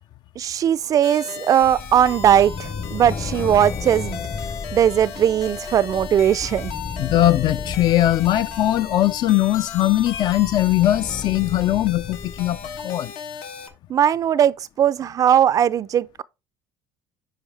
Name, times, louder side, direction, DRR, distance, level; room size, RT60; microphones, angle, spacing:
voice 1, 0.4-4.2 4.7-6.7 13.9-16.2, right 9 dB, 35° right, 0.4 m, -19 dB
sound 1, 1.0-13.7, left 6 dB, 75° left, 1.3 m, -36 dB
sound 2, 1.6-12.9, left 5 dB, 30° left, 0.8 m, -34 dB
voice 2, 7.0-13.1, left 14 dB, 50° left, 0.4 m, -20 dB
9.1 x 4.9 x 3.3 m
supercardioid pair, 110°, 10 cm